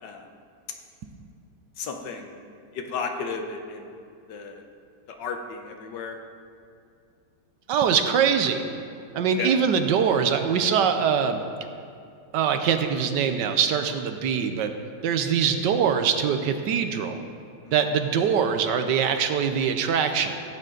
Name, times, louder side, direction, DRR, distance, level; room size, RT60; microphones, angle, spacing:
voice 1, 1.8-2.3 2.7-3.9 4.3-4.6 5.2-6.2 9.4-9.5 17.6-17.7, left 5 dB, 80° left, 4 dB, 1.6 m, -33 dB
voice 2, 7.7-8.6 9.1-11.4 12.3-14.7 15.0-17.2 17.7-20.4, right 7 dB, 85° right, 7 dB, 1.4 m, -23 dB
16.0 x 9.2 x 3.9 m, 2.4 s
omnidirectional pair, 1.9 m